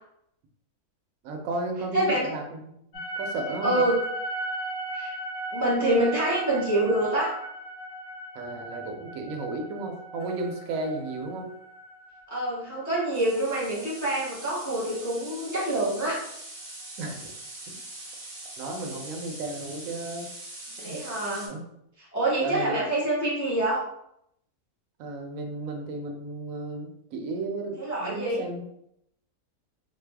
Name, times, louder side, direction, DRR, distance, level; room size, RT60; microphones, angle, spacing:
voice 1, 1.2-2.6 3.2-3.9 8.3-11.5 17.0-17.3 17.7-17.8 18.6-20.3 20.8-21.0 21.5-21.6 22.4-22.9 25.0-28.7, right 2 dB, 70° right, 2 dB, 1.0 m, -34 dB
voice 2, 1.9-2.3 3.6-4.0 4.9-5.1 5.5-7.3 12.3-16.2 20.8-21.5 22.1-23.8 27.8-28.4, right 1 dB, 15° left, -6 dB, 0.6 m, -26 dB
sound 1, 2.9-15.1, right 2 dB, 75° left, 1.2 m, -37 dB
sound 2, 13.1-21.5, right 2 dB, 40° right, 0.8 m, -42 dB
3.2 x 2.0 x 3.2 m, 0.76 s
omnidirectional pair, 1.6 m